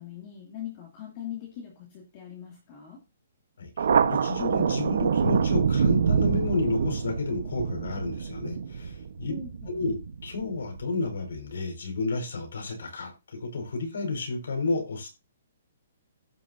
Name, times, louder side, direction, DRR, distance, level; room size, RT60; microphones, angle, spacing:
voice 1, 0.0-3.0 9.3-9.8, left 8 dB, 25° left, 2.2 m, -41 dB
Thunder, 3.8-10.8, right 6 dB, 60° right, 1.0 m, -26 dB
voice 2, 4.0-9.3 9.7-15.1, left 3 dB, 90° left, 4.6 m, -31 dB
16.0 x 6.8 x 2.6 m
hypercardioid pair, 180°, 0 cm